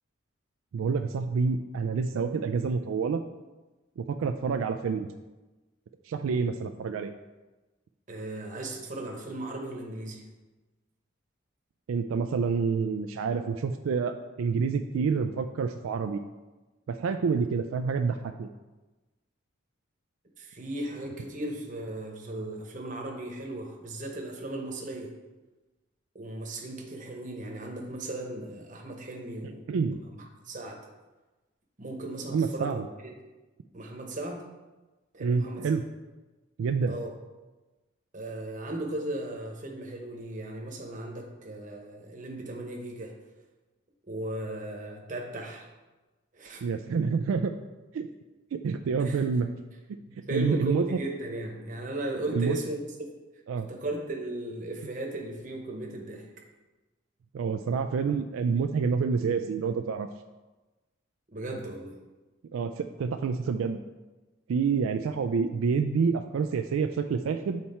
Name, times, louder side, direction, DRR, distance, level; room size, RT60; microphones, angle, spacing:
voice 1, 0.7-3.2 4.0-5.1 6.1-7.1 11.9-16.2 17.0-18.5 29.7-30.0 32.3-32.8 35.2-35.8 36.6-37.0 46.6-47.5 47.9-48.1 48.5-49.5 50.3-50.8 52.3-52.6 53.5-53.7 57.3-60.1 62.5-63.8 64.5-67.6, right 5 dB, 80° right, 7 dB, 0.3 m, -28 dB
voice 2, 8.1-10.3 20.4-25.1 26.1-29.7 30.1-30.8 31.8-33.1 33.7-34.4 35.1-35.7 36.9-37.1 38.1-43.1 44.1-45.7 46.3-46.6 49.0-49.2 50.1-52.8 53.7-56.3 61.3-62.0, right 1 dB, 40° right, 1 dB, 1.0 m, -36 dB
7.4 x 4.3 x 4.3 m, 1.2 s
head